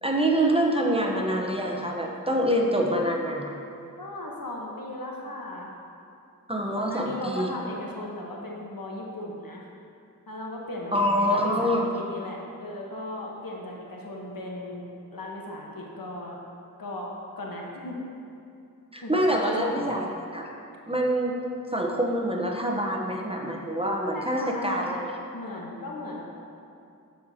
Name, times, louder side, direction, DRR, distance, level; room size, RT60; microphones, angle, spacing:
voice 1, 0.0-3.5 6.5-7.5 10.9-11.9 18.9-20.1 20.3-20.5 20.9-21.4 21.7-25.1, right 1 dB, 15° right, -1 dB, 0.8 m, -25 dB
voice 2, 4.0-5.7 6.7-9.7 10.3-14.8 15.1-16.4 16.8-18.0 19.0-20.1 24.1-26.2, left 1 dB, 75° left, -2 dB, 1.1 m, -36 dB
7.9 x 6.5 x 2.7 m, 2.5 s
wide cardioid pair, 50°, 35 cm